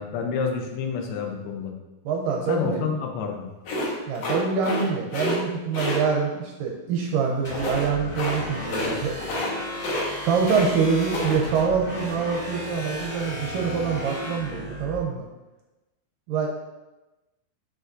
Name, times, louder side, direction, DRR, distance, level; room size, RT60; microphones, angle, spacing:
voice 1, 0.0-1.7 2.5-3.5, left 6 dB, 90° left, 3 dB, 2.7 m, -28 dB
voice 2, 2.1-2.8 3.8-9.1 10.2-15.3 16.3-16.5, right 5 dB, 80° right, -1 dB, 2.1 m, -25 dB
sound 1, 3.6-4.8 5.1-5.4 5.7-6.0 7.5-7.8 8.1-8.4 8.6-8.9 9.2-9.5 9.8-10.7 11.0-11.4, left 1 dB, 65° left, 1.6 m, -28 dB
sound 2, 7.4-15.0, left 1 dB, 20° left, 1.1 m, -35 dB
6.6 x 6.0 x 2.6 m, 1.1 s
omnidirectional pair, 4.3 m